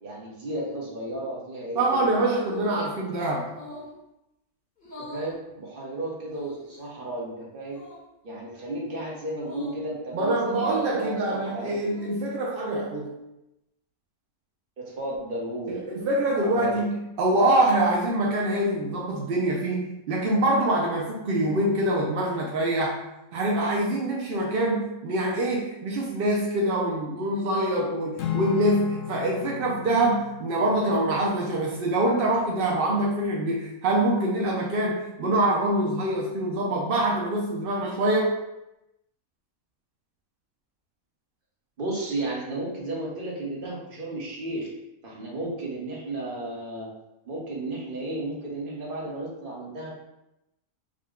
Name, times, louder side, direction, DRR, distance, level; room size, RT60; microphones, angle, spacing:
voice 1, 0.0-3.1 3.7-3.8 5.0-7.8 8.2-11.8 14.8-15.8 16.4-16.7 41.8-44.7 45.0-46.9 47.2-49.9, right 1 dB, 40° right, -4 dB, 1.1 m, -33 dB
voice 2, 1.8-3.5 10.1-13.1 15.7-23.0 23.3-38.3, right 1 dB, 60° right, -2 dB, 0.6 m, -25 dB
sound 1, 2.4-2.8 3.5-4.0 4.8-5.3 6.3-6.8 7.6-8.0 9.4-9.8 10.4-11.0 11.6-12.2, left 1 dB, 40° left, 1.3 m, -43 dB
Acoustic guitar / Strum, 28.2-32.6, left 10 dB, 65° left, 0.9 m, -36 dB
5.0 x 2.2 x 3.5 m, 0.90 s
omnidirectional pair, 1.6 m